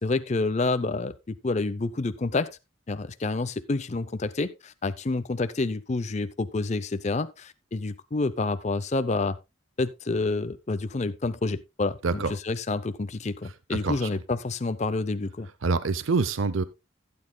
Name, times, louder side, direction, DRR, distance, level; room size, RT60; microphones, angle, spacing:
voice 1, 0.0-2.5 2.9-9.4 9.8-15.5, left 3 dB, 35° left, 0.5 m, -28 dB
voice 2, 15.6-16.6, right 4 dB, 75° right, 0.6 m, -25 dB
16.0 x 8.7 x 2.2 m
head